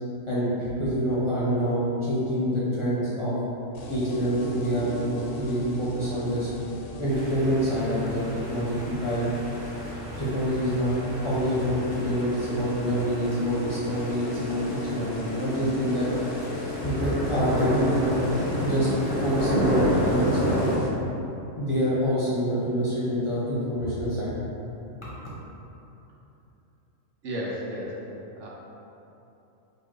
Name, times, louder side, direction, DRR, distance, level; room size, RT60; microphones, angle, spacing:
voice 1, 0.3-3.3 3.9-6.5 7.0-9.3 10.2-10.9 11.2-16.1 16.8-18.2 18.6-18.9 19.2-20.9 21.6-24.3 25.0-25.1, equal, 25° left, -9 dB, 0.8 m, -26 dB
sound 1, 3.7-20.9, left 1 dB, 70° left, 0.9 m, -39 dB
sound 2, 7.1-20.7, equal, 45° right, 1.9 m, -31 dB
voice 2, 27.2-27.9 28.4-28.5, equal, 75° right, -4 dB, 1.1 m, -32 dB
4.3 x 2.5 x 4.7 m, 3.0 s
omnidirectional pair, 1.3 m